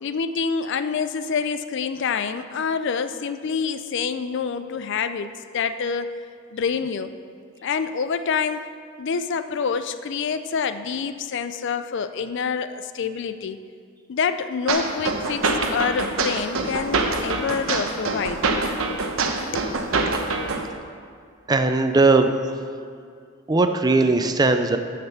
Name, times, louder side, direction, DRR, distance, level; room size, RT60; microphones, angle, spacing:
voice 1, 0.0-6.1 6.5-7.1 7.6-8.7 9.0-13.6 14.1-18.4 19.5-19.7, left 6 dB, 60° left, 11 dB, 0.4 m, -27 dB
sound 1, 14.7-20.7, right 3 dB, 80° right, 0.9 m, -25 dB
voice 2, 21.5-22.6 23.5-24.8, right 3 dB, 20° right, 7 dB, 0.5 m, -19 dB
9.8 x 6.7 x 5.8 m, 2.2 s
head